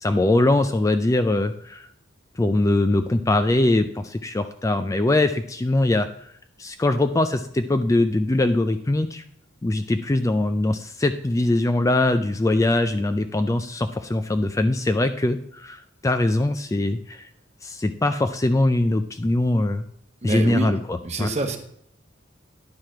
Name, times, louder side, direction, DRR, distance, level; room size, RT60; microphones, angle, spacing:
voice 1, 0.0-1.9 2.4-6.3 6.6-9.2 9.6-17.3 17.6-19.8 20.2-21.3, left 2 dB, 15° left, 9 dB, 0.3 m, -22 dB
voice 2, 20.2-20.8 21.0-21.6, right 2 dB, 35° right, 5 dB, 1.1 m, -26 dB
10.5 x 4.8 x 5.8 m, 0.71 s
head